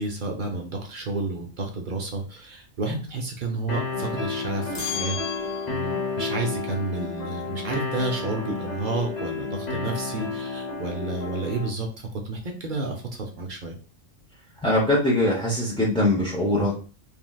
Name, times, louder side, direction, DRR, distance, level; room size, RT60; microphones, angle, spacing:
voice 1, 0.0-5.2 5.7-13.8, right 3 dB, 55° right, 1 dB, 0.6 m, -31 dB
sound 1, 3.7-11.7, left 4 dB, 40° left, 0.7 m, -31 dB
sound 2, 4.7-6.1, left 8 dB, 75° left, 1.1 m, -34 dB
voice 2, 14.6-16.8, left 1 dB, 10° left, -5 dB, 0.3 m, -22 dB
3.1 x 2.6 x 2.2 m, 0.36 s
omnidirectional pair, 1.3 m